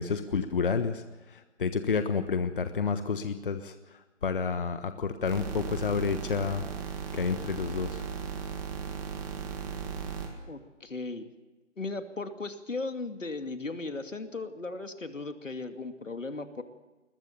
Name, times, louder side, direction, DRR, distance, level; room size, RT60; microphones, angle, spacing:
voice 1, 0.0-6.7 7.1-8.1, left 5 dB, 45° left, 9 dB, 1.3 m, -30 dB
sound 1, 5.2-10.3, right 7 dB, 15° right, 1.7 m, -37 dB
voice 2, 10.5-11.3 11.8-16.6, left 3 dB, 80° left, 7 dB, 2.6 m, -37 dB
21.5 x 20.0 x 7.0 m, 1.2 s
figure-of-eight pair, 155°, 37 cm